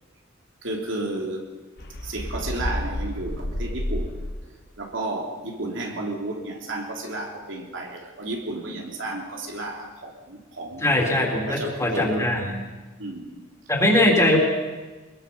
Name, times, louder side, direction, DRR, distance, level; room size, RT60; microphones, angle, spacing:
voice 1, 0.6-1.5 2.0-4.1 4.8-11.0 11.4-12.3 13.0-13.4, right 2 dB, 70° right, 0 dB, 3.4 m, -32 dB
sound 1, 1.8-4.6, left 1 dB, 55° left, 1.9 m, -30 dB
voice 2, 10.8-12.6 13.7-14.4, left 1 dB, 15° left, -1 dB, 3.8 m, -21 dB
23.5 x 21.5 x 5.6 m, 1.3 s
head